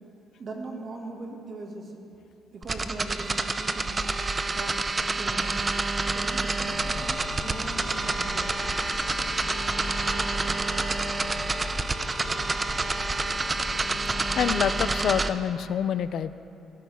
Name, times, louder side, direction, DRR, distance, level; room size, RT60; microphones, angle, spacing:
voice 1, 0.4-1.9 2.5-4.1 4.5-5.5 6.0-8.6, right 2 dB, 50° right, 1 dB, 1.9 m, -40 dB
sound 1, 2.6-15.3, right 3 dB, 30° right, 0.5 m, -28 dB
sound 2, 6.6-15.0, left 3 dB, 90° left, 1.6 m, -40 dB
voice 2, 14.4-16.3, left 9 dB, 70° left, 14 dB, 0.4 m, -26 dB
17.5 x 11.5 x 3.5 m, 2.8 s
cardioid pair, 90°, 0 cm